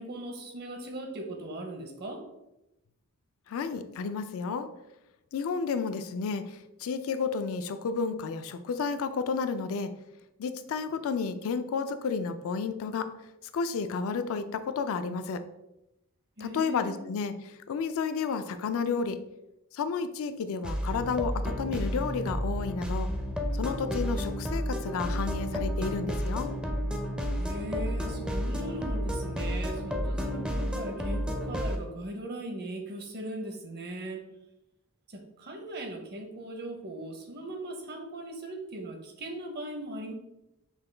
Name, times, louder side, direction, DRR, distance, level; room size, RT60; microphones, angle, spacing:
voice 1, 0.0-2.2 16.4-17.0 27.3-34.2 35.1-40.1, right 1 dB, 50° right, 4 dB, 0.7 m, -39 dB
voice 2, 3.5-4.7 5.3-9.9 10.4-13.1 13.5-15.4 16.4-19.2 19.7-23.1 23.5-26.5, left 5 dB, 65° left, 10 dB, 0.3 m, -31 dB
sound 1, 20.6-31.8, equal, 5° right, 0.4 m, -31 dB
5.5 x 2.2 x 3.2 m, 0.90 s
head